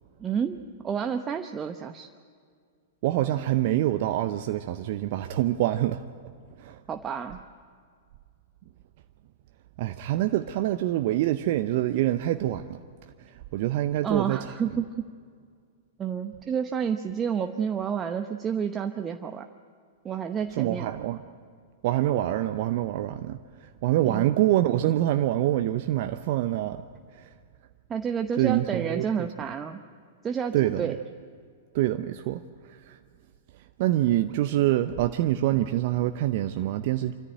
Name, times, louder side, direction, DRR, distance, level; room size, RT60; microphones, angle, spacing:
voice 1, 0.2-0.6 0.8-2.1 6.9-7.4 14.0-15.1 16.0-19.4 20.0-20.9 24.1-24.3 27.9-29.8 30.2-31.0, right 7 dB, 25° right, 0.9 m, -30 dB
voice 2, 3.0-6.0 6.6-6.8 9.8-12.8 13.5-14.5 20.6-21.2 21.8-26.8 27.1-27.3 28.4-29.3 30.5-31.0 31.7-32.4 32.8-33.0 33.8-37.1, right 14 dB, 55° right, 0.7 m, -25 dB
26.0 x 14.0 x 9.1 m
hypercardioid pair, 105°, 0 cm